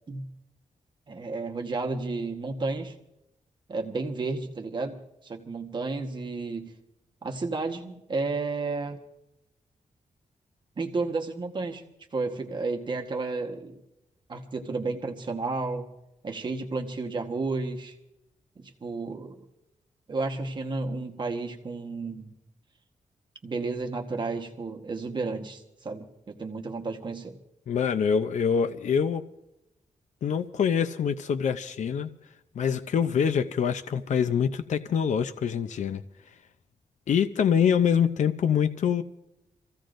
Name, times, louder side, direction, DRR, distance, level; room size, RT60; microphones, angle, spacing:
voice 1, 1.1-2.9 3.7-5.0 5.2-6.7 7.2-9.0 10.8-11.8 12.1-13.7 14.3-15.9 16.2-17.9 18.6-19.4 20.1-22.3 23.4-27.4, right 3 dB, 35° right, 3 dB, 1.3 m, -32 dB
voice 2, 27.7-29.2 30.2-32.1 32.6-36.0 37.1-39.0, left 7 dB, 65° left, 10 dB, 0.6 m, -25 dB
28.0 x 15.5 x 2.6 m, 0.87 s
wide cardioid pair, 165°, 13 cm